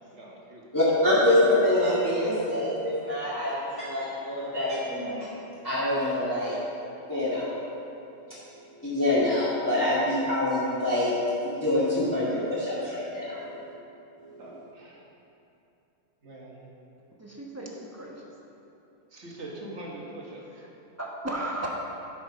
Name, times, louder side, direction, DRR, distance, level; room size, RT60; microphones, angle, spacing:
voice 1, 0.1-0.6 14.4-15.1 16.2-16.6 19.1-20.5, right 1 dB, 35° right, -3 dB, 1.6 m, -42 dB
voice 2, 0.7-5.3 5.6-6.5 7.1-7.6 8.8-11.1 11.4-13.4, left 1 dB, 10° left, -11 dB, 1.7 m, -25 dB
voice 3, 17.2-18.2 21.0-21.7, right 1 dB, 10° right, -3 dB, 0.7 m, -35 dB
12.5 x 6.5 x 5.1 m, 2.8 s
omnidirectional pair, 2.4 m